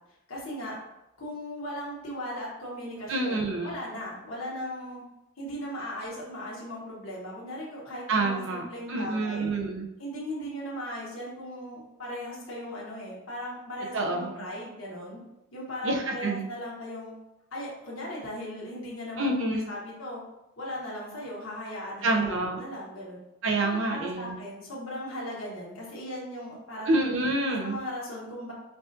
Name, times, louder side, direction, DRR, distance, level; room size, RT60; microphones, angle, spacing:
voice 1, 0.3-0.8 1.2-5.0 5.4-9.5 10.0-15.2 15.5-17.2 17.5-19.3 19.7-20.2 20.6-23.2 23.6-26.9 27.5-28.5, equal, 80° left, -5 dB, 1.2 m, -38 dB
voice 2, 3.1-3.7 8.1-9.9 13.9-14.4 15.8-16.5 19.2-19.7 22.0-22.6 23.4-24.4 26.9-27.8, right 2 dB, 65° right, 1 dB, 0.6 m, -27 dB
4.6 x 2.5 x 2.6 m, 0.89 s
head